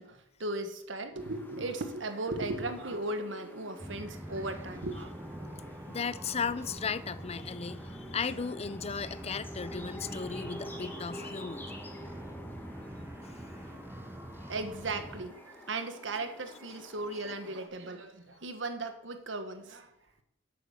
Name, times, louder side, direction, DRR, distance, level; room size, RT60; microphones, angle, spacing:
voice 1, 0.0-5.1 14.5-19.9, right 2 dB, 85° right, 1.6 m, -37 dB
sound 1, 1.2-17.7, left 1 dB, 10° left, 2.0 m, -49 dB
sound 2, 3.8-15.3, right 1 dB, 10° right, 0.9 m, -44 dB
voice 2, 5.9-11.7, left 5 dB, 35° left, 0.5 m, -36 dB
11.0 x 8.6 x 7.3 m
head